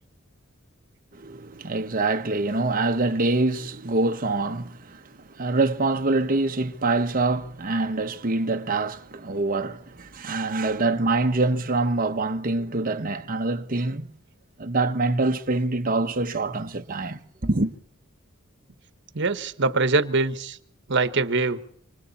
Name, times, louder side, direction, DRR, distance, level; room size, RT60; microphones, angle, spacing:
voice 1, 1.1-14.1 14.6-17.7, right 2 dB, 40° right, 1.0 m, -25 dB
voice 2, 19.1-20.6 20.9-21.6, right 3 dB, 60° right, 1.3 m, -23 dB
27.0 x 25.5 x 4.2 m
head